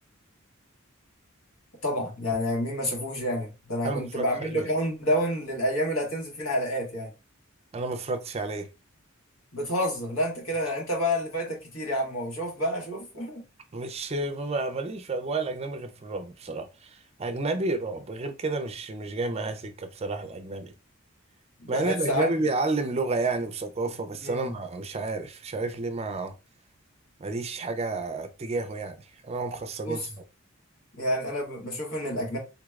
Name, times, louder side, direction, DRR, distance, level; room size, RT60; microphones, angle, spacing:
voice 1, 1.8-7.1 9.5-13.4 21.6-22.3 24.2-24.5 29.8-30.1 31.0-32.4, equal, 85° left, 1.5 m, -29 dB
voice 2, 3.8-4.3 4.5-4.7 7.7-8.7 13.7-20.7 21.7-26.3 27.2-30.2, right 3 dB, 30° right, 0.4 m, -31 dB
3.8 x 3.1 x 2.3 m
head